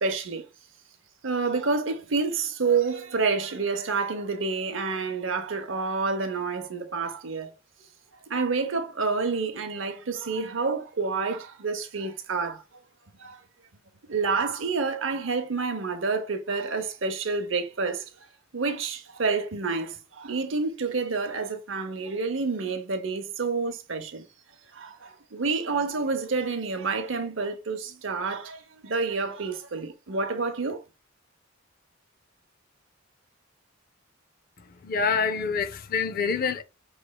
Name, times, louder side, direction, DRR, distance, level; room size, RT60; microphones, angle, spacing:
voice 1, 0.0-0.4 1.2-7.5 8.3-12.8 13.2-13.4 14.1-24.3 24.7-30.8, right 4 dB, 70° right, 0.8 m, -29 dB
voice 2, 34.6-36.6, left 5 dB, 45° left, 0.5 m, -27 dB
5.9 x 3.2 x 2.3 m
head